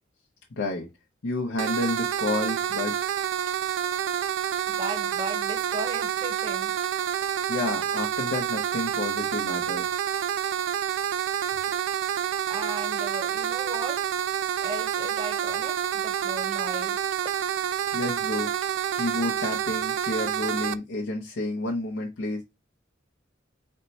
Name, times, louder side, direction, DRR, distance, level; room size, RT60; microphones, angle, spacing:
voice 1, 0.5-0.9 1.2-3.0 7.1-9.9 17.9-18.5 18.9-22.4, left 2 dB, 75° left, 0.7 m, -30 dB
sound 1, 1.6-20.8, right 9 dB, 80° right, 0.3 m, -28 dB
voice 2, 4.7-6.8 12.5-14.0 14.6-17.0, right 2 dB, 25° right, 0.6 m, -36 dB
4.4 x 2.1 x 4.0 m
head